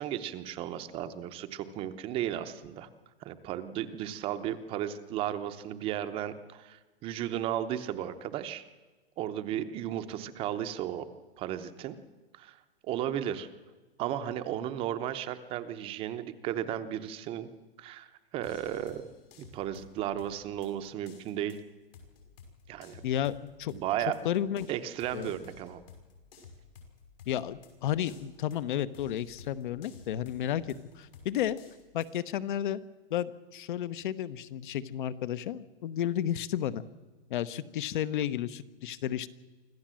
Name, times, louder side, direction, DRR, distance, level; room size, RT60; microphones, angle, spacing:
voice 1, 0.0-2.9 3.2-8.6 9.2-11.1 11.4-12.0 12.3-12.6 12.8-13.5 14.0-17.5 17.8-19.0 19.5-21.6 22.7-23.0 23.7-24.3 24.7-25.8, right 11 dB, 20° right, 10 dB, 0.8 m, -34 dB
sound 1, 18.4-32.2, left 5 dB, 80° left, 6.3 m, -54 dB
voice 2, 23.0-23.7 24.2-24.7 25.1-25.3 27.3-31.6 31.9-32.8 33.1-36.8 37.3-39.3, left 11 dB, 55° left, 15 dB, 1.1 m, -32 dB
25.5 x 14.5 x 7.6 m, 1.3 s
supercardioid pair, 170°, 29 cm